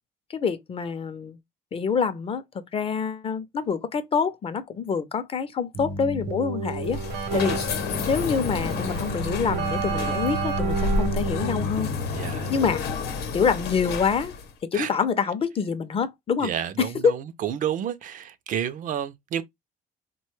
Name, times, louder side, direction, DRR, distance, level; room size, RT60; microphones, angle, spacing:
voice 1, 0.3-1.4 1.7-2.4 2.7-7.0 7.3-7.6 8.1-11.9 12.5-12.8 13.3-14.3 14.7-16.5 16.8-17.2, left 6 dB, 35° left, 0.5 m, -26 dB
Keyboard (musical), 5.7-13.0, right 3 dB, 70° right, 0.8 m, -31 dB
sound 1, 6.7-14.5, left 3 dB, 75° left, 0.8 m, -30 dB
voice 2, 12.1-12.5 14.7-14.9 16.4-19.4, right 9 dB, 50° right, 0.4 m, -30 dB
3.6 x 2.2 x 3.1 m
cardioid pair, 110°, 17 cm